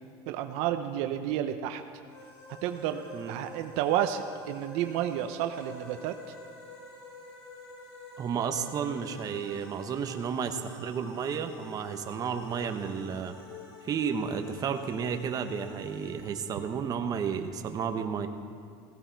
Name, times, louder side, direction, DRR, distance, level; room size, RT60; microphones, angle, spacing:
voice 1, 0.3-1.8 2.6-6.1, right 11 dB, 70° right, 8 dB, 0.8 m, -31 dB
sound 1, 2.1-17.5, left 3 dB, 55° left, 4.5 m, -48 dB
voice 2, 8.2-13.3 13.8-18.3, right 7 dB, 35° right, 6 dB, 1.0 m, -32 dB
16.0 x 15.5 x 4.6 m, 2.2 s
cardioid pair, 130°, 11 cm